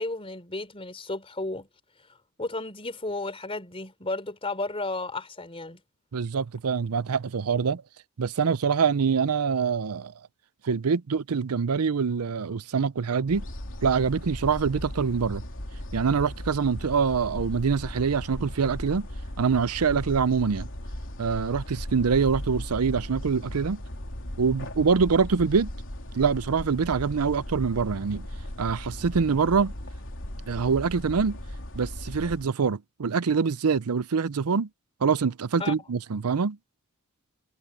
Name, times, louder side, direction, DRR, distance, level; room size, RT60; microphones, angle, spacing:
voice 1, 0.0-1.7 2.4-5.8 35.6-35.7, left 2 dB, 25° left, 3.8 m, -33 dB
voice 2, 6.1-7.8 8.2-10.1 10.6-13.4 13.8-15.4 15.9-19.1 19.4-20.7 21.2-23.8 24.4-25.7 26.1-28.2 28.6-29.7 30.5-31.4 31.7-34.7 35.0-36.6, right 5 dB, 85° right, 0.6 m, -25 dB
sound 1, 13.3-32.5, left 1 dB, 60° left, 3.3 m, -37 dB
head